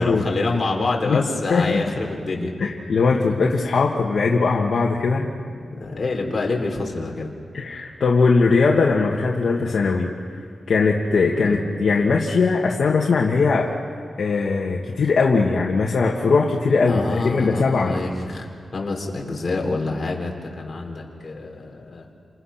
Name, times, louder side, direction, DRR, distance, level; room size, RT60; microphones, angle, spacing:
voice 1, 0.0-2.5 5.1-5.3 5.7-7.3 11.4-11.6 16.8-18.5 18.7-22.1, left 3 dB, 35° left, 0 dB, 3.9 m, -26 dB
voice 2, 1.5-1.8 2.6-5.2 7.5-10.1 10.7-13.7 14.2-18.0, left 4 dB, 60° left, -2 dB, 1.8 m, -20 dB
29.0 x 27.0 x 5.9 m, 2.1 s
wide cardioid pair, 155°, 0 cm